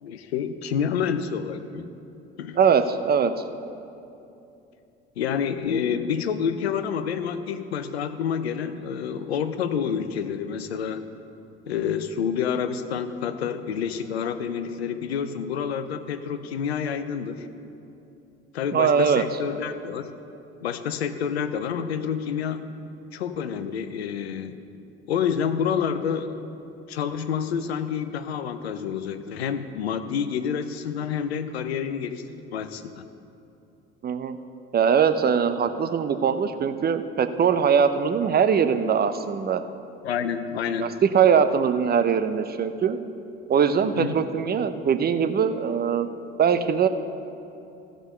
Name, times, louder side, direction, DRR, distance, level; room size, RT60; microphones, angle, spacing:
voice 1, 0.0-1.9 2.4-2.6 5.2-11.1 11.7-17.5 18.5-20.1 20.6-22.6 23.1-24.6 25.1-26.3 26.9-32.2 32.5-33.1 40.0-41.0 43.8-44.3, left 7 dB, 90° left, 11 dB, 0.6 m, -28 dB
voice 2, 2.6-3.3 18.7-19.2 34.0-34.4 34.7-39.6 40.8-43.0 43.5-46.1 46.4-46.9, right 7 dB, 30° right, 10 dB, 0.7 m, -21 dB
14.5 x 5.1 x 6.6 m, 2.7 s
hypercardioid pair, 65°, 31 cm